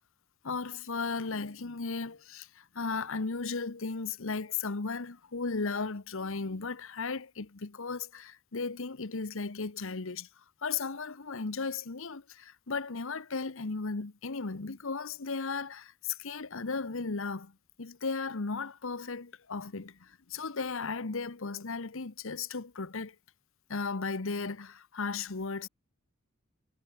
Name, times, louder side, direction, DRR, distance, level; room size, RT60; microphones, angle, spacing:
voice 1, 0.4-10.3 10.6-17.5 17.8-23.1 23.7-25.7, left 4 dB, 65° left, 1.1 m, -35 dB
head